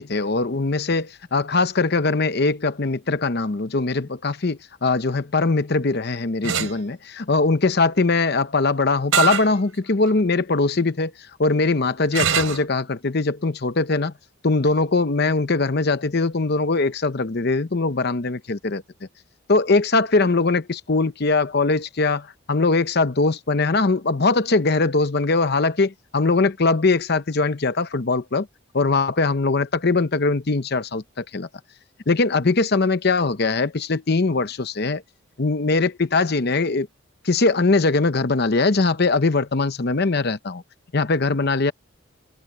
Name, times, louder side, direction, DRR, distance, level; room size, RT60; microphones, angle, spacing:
voice 1, 0.0-11.1 11.4-14.1 14.4-18.8 19.5-28.5 28.7-31.5 32.1-35.0 35.4-36.9 37.2-40.6 40.9-41.7, left 3 dB, 50° left, 0.8 m, -21 dB
sound 1, 6.4-6.7 9.1-9.5 10.1-10.2 12.1-12.7, right 7 dB, 85° right, 3.3 m, -22 dB
head